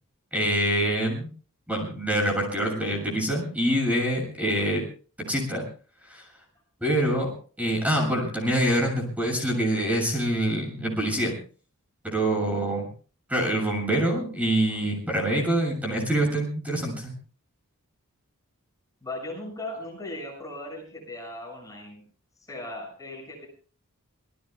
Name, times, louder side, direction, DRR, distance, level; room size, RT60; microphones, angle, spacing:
voice 1, 0.3-1.3 1.7-4.8 5.3-5.6 6.0-6.3 6.8-7.3 7.6-11.3 12.0-12.9 13.3-17.1, right 1 dB, 5° right, 1 dB, 7.2 m, -25 dB
voice 2, 19.0-22.0 22.5-23.5, left 1 dB, 15° left, 0 dB, 6.6 m, -37 dB
27.5 x 19.5 x 2.3 m, 0.41 s
head